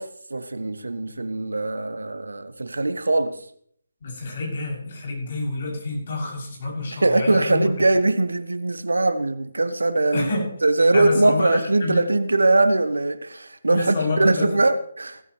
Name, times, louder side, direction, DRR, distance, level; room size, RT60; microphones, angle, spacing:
voice 1, 0.0-3.4 6.9-10.3 10.6-15.2, right 2 dB, 75° right, 1.1 m, -21 dB
voice 2, 4.0-7.7 10.1-10.5 10.9-12.0 13.7-14.5, left 2 dB, 45° left, 7.6 m, -28 dB
17.0 x 14.5 x 3.3 m
figure-of-eight pair, 145°, 0 cm